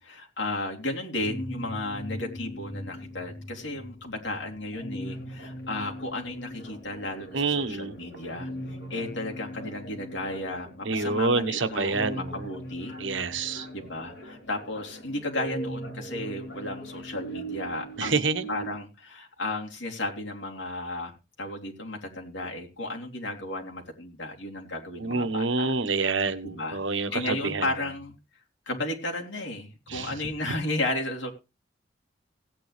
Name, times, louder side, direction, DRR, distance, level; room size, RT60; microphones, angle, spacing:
voice 1, 0.0-13.0 13.7-18.2 18.5-21.1 21.4-25.7 26.4-26.8 27.1-28.1 28.7-31.3, left 2 dB, 75° left, 0 dB, 3.3 m, -34 dB
sound 1, 1.1-18.8, right 1 dB, 55° left, 6.6 m, -40 dB
voice 2, 7.3-7.9 10.8-12.5 13.0-13.7 18.0-18.4 25.0-27.6 29.9-30.1, right 3 dB, 85° right, 10 dB, 1.2 m, -27 dB
16.5 x 9.2 x 3.4 m, 0.27 s
head